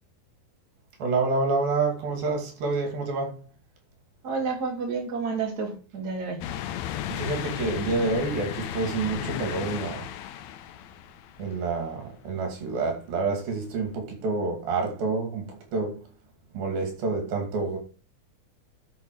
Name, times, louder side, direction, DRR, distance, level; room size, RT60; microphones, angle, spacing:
voice 1, 1.0-3.4 7.1-10.1 11.4-16.0 16.5-17.8, right 3 dB, 75° right, 4.3 m, -28 dB
voice 2, 4.2-6.4, right 4 dB, 30° right, 3.0 m, -30 dB
sound 1, 6.4-12.0 12.5-12.6 13.9-14.0, left 11 dB, 80° left, 1.6 m, -35 dB
12.0 x 5.7 x 4.8 m
omnidirectional pair, 4.2 m